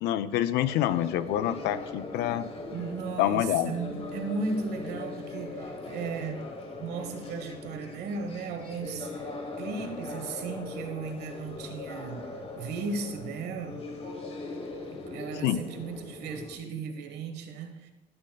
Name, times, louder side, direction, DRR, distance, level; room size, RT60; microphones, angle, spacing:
voice 1, 0.0-2.4 3.2-3.7 15.4-15.6, left 12 dB, 80° left, 0.5 m, -26 dB
sound 1, 0.6-16.5, left 3 dB, 35° left, 1.1 m, -40 dB
voice 2, 2.3-9.3 9.6-13.9 14.9-17.9, right 4 dB, 80° right, 1.2 m, -36 dB
12.5 x 7.7 x 2.3 m
cardioid pair, 110°, 17 cm